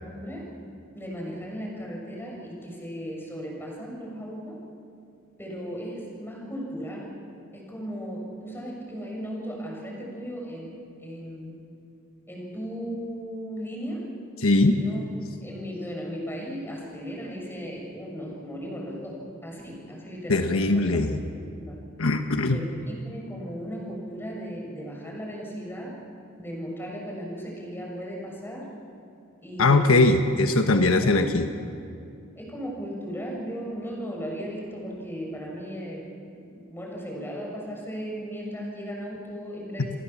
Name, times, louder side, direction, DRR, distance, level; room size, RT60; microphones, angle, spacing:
voice 1, 0.0-0.4 0.9-4.6 5.4-7.1 7.5-10.7 11.0-11.6 12.3-14.1 14.6-15.0 15.4-21.0 21.3-21.8 22.5-26.0 26.4-28.7 29.4-30.1 30.8-31.6 32.4-36.1 36.3-40.0, equal, 10° left, -2 dB, 7.1 m, -36 dB
voice 2, 14.4-14.8 20.3-21.2 22.0-22.6 29.6-31.4, left 2 dB, 75° left, 6 dB, 1.2 m, -20 dB
30.0 x 20.5 x 7.3 m, 2.5 s
head